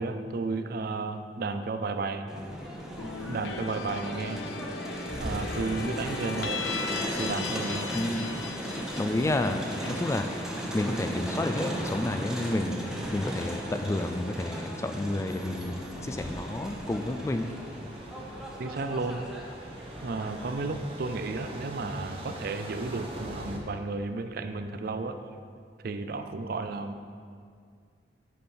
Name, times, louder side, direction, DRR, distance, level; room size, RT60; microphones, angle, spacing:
voice 1, 0.0-2.3 3.0-4.4 5.2-6.7 7.2-7.9 18.6-19.2 20.0-25.2 25.8-27.0, right 3 dB, 55° right, 8 dB, 0.4 m, -33 dB
Crowd, 2.3-20.5, equal, 5° right, 0.9 m, -36 dB
sound 1, 3.0-11.8, left 5 dB, 80° left, 0.5 m, -38 dB
voice 2, 9.0-9.6 9.9-10.2 10.7-12.7 13.1-17.5, left 1 dB, 15° left, 7 dB, 0.3 m, -30 dB
sound 2, 15.3-23.6, right 1 dB, 35° right, 0.9 m, -44 dB
8.3 x 4.4 x 5.5 m, 2.1 s
head